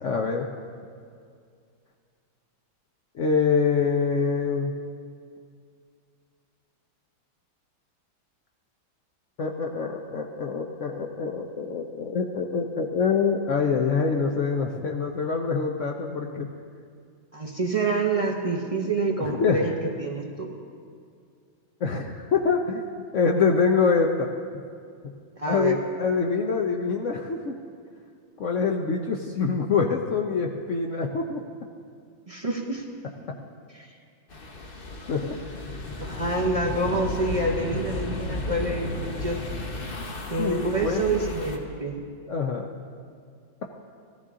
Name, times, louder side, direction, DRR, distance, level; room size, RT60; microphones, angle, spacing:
voice 1, 0.0-0.5 3.1-4.7 9.4-16.5 19.2-19.6 21.8-22.8 23.1-24.3 25.0-25.1 25.5-27.5 28.4-31.4 35.1-35.3 40.4-41.2 42.3-42.7, left 5 dB, 65° left, 1 dB, 0.7 m, -25 dB
voice 2, 17.3-20.5 25.4-25.8 32.3-32.8 33.7-33.9 36.0-39.4 40.3-42.0, right 2 dB, 35° right, 0 dB, 0.5 m, -27 dB
sound 1, 34.3-41.6, left 2 dB, 35° left, 1.0 m, -34 dB
16.0 x 13.5 x 3.7 m, 2.3 s
omnidirectional pair, 2.1 m